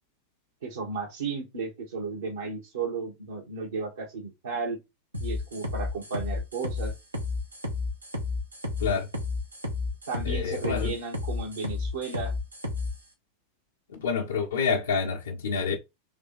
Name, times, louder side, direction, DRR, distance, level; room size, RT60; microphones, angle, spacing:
voice 1, 0.6-4.8 5.2-6.9 10.1-12.3, right 4 dB, 65° right, 1.4 m, -34 dB
sound 1, 5.1-12.9, left 3 dB, 80° right, 1.3 m, -31 dB
voice 2, 10.2-10.9 13.9-15.8, left 5 dB, 65° left, 0.9 m, -28 dB
3.5 x 3.1 x 3.9 m
figure-of-eight pair, 90°, 0 cm